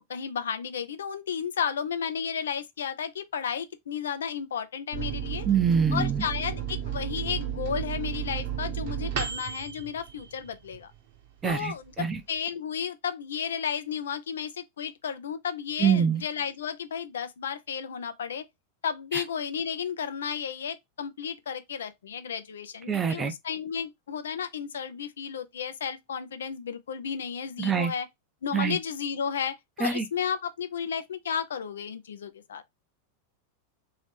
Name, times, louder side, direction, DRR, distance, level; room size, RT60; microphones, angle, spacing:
voice 1, 0.0-5.5 5.9-10.9 11.4-18.4 18.8-28.1 28.4-32.6, left 7 dB, 65° left, 0.5 m, -33 dB
Microwave oven, 4.9-11.0 11.4-11.5 11.8-12.4, right 10 dB, 45° right, 0.9 m, -33 dB
voice 2, 5.5-6.3 11.4-12.2 15.8-16.2 19.1-19.2 22.9-23.3 27.6-27.9 28.5-28.8 29.8-30.0, right 7 dB, 20° right, 0.6 m, -25 dB
3.0 x 2.8 x 3.3 m
figure-of-eight pair, 90°, 0 cm